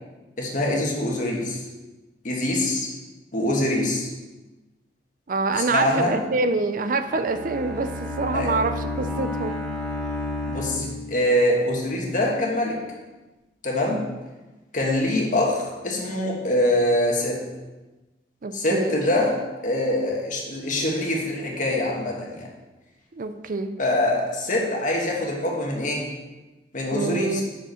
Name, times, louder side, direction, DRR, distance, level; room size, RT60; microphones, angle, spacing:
voice 1, 0.4-1.6 2.2-2.9 3.3-4.1 5.6-6.2 8.3-8.5 10.5-12.8 13.6-14.1 14.7-17.4 18.5-19.4 19.6-22.5 23.8-26.1 26.7-27.4, left 1 dB, 50° left, -1 dB, 1.5 m, -24 dB
voice 2, 5.3-9.6 18.4-19.0 23.1-23.8 26.9-27.4, right 3 dB, 50° right, 9 dB, 0.6 m, -26 dB
Bowed string instrument, 6.9-11.5, left 2 dB, 5° left, 1.4 m, -31 dB
6.2 x 5.3 x 6.4 m, 1.1 s
head